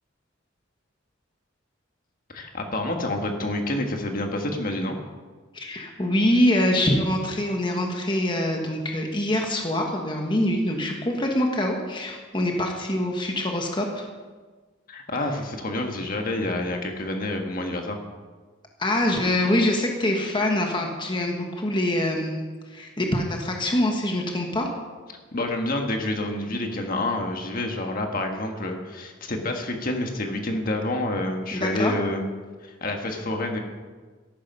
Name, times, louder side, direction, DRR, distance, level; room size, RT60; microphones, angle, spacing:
voice 1, 2.3-5.0 14.9-18.0 25.3-32.3 32.6-33.6, left 1 dB, 45° left, 3 dB, 1.5 m, -28 dB
voice 2, 5.5-14.1 18.8-24.7 31.5-31.9, left 1 dB, 25° left, 1 dB, 1.4 m, -24 dB
14.0 x 11.5 x 5.5 m, 1.4 s
head